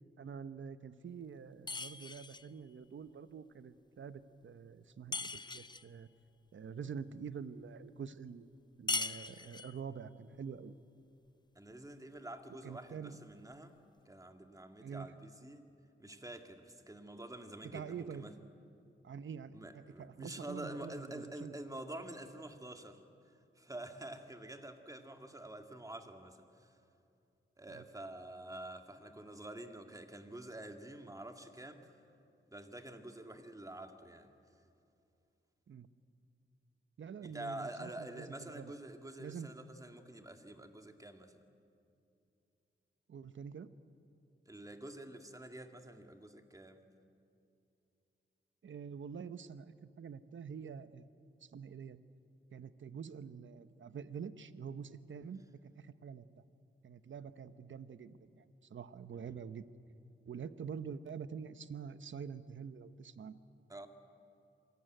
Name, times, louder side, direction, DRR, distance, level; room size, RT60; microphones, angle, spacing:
voice 1, 0.2-6.1 6.5-8.5 8.8-10.7 12.6-13.2 14.8-15.2 17.6-18.3 19.0-21.6 27.7-27.8 35.7-35.9 37.0-38.7 39.2-39.5 43.1-43.7 48.6-51.1 51.4-52.0 52.5-56.3 56.8-58.4 58.7-59.7 60.3-63.4, right 6 dB, 65° right, 13 dB, 1.0 m, -46 dB
sound 1, 1.7-2.5 5.1-5.9 8.9-9.8, left 3 dB, 20° left, 0.5 m, -39 dB
voice 2, 11.6-13.8 14.1-15.7 16.0-18.3 19.5-23.0 23.6-26.8 27.6-31.9 32.5-34.4 37.2-41.4 44.5-46.9 59.1-59.3 63.7-63.9, right 1 dB, 15° right, 6 dB, 2.1 m, -48 dB
26.0 x 18.5 x 9.2 m, 2.6 s
cardioid pair, 75°, 21 cm